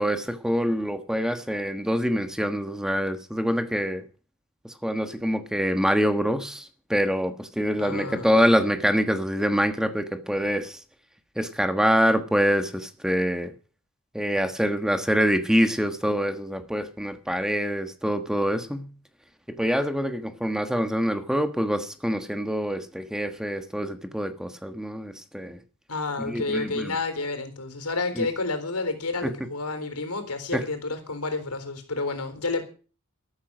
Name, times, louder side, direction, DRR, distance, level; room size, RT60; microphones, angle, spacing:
voice 1, 0.0-4.0 4.8-10.8 11.4-13.5 14.1-18.9 19.6-25.6 26.3-26.9 28.2-28.3 29.2-29.3 30.5-30.6, equal, 5° right, 7 dB, 1.4 m, -25 dB
voice 2, 7.8-8.3 25.9-32.6, left 3 dB, 90° left, 8 dB, 3.9 m, -30 dB
13.5 x 13.0 x 6.2 m, 0.37 s
head